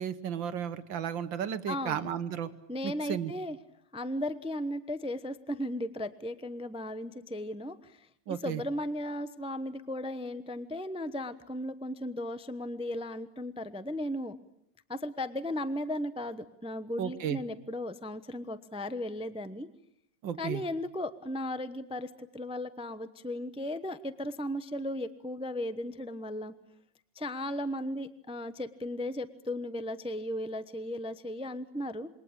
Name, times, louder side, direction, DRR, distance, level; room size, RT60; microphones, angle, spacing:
voice 1, 0.0-2.5 2.8-3.3 8.3-8.6 17.0-17.4 20.2-20.6, right 9 dB, 85° right, 12 dB, 2.0 m, -34 dB
voice 2, 1.7-2.1 2.7-3.6 3.9-14.4 14.9-19.7 20.4-26.5 27.1-32.1, left 1 dB, 5° right, 12 dB, 0.6 m, -36 dB
27.5 x 22.5 x 8.8 m, 0.72 s
omnidirectional pair, 2.0 m